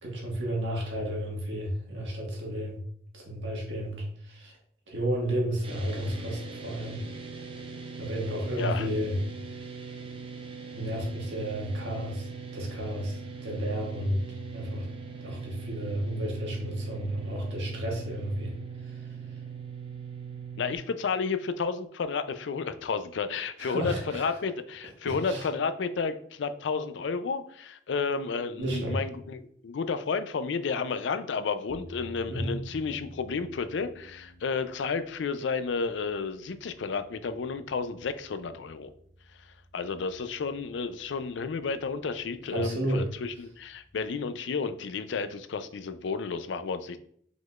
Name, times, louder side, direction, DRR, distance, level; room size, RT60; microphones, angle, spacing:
voice 1, 0.0-2.8 3.1-4.5 4.9-7.0 8.0-9.1 9.5-9.9 10.7-12.3 12.5-14.8 15.2-18.5 23.6-24.3 25.0-25.5 28.6-29.0 32.3-32.6 42.5-43.0, equal, 80° right, -2 dB, 1.5 m, -32 dB
sound 1, 5.6-20.8, right 5 dB, 30° right, 0.5 m, -41 dB
voice 2, 8.6-8.9 20.6-38.9 39.7-47.0, left 5 dB, 80° left, 11 dB, 0.4 m, -31 dB
sound 2, 31.7-44.2, equal, 20° left, 1.0 m, -52 dB
5.0 x 3.9 x 2.3 m, 0.62 s
head